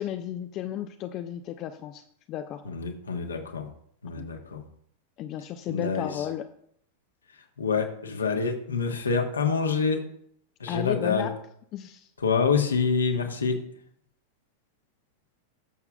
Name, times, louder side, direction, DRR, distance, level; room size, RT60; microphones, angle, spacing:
voice 1, 0.0-2.0 2.3-2.6 4.1-4.3 5.2-6.5 10.7-11.3 11.7-12.1, left 11 dB, 35° left, 0.6 m, -33 dB
voice 2, 2.6-3.7 4.0-4.6 5.7-6.2 7.6-10.1 10.6-11.3 12.2-13.6, left 5 dB, 75° left, 1.4 m, -27 dB
20.0 x 7.0 x 2.3 m
figure-of-eight pair, 90°, 0 cm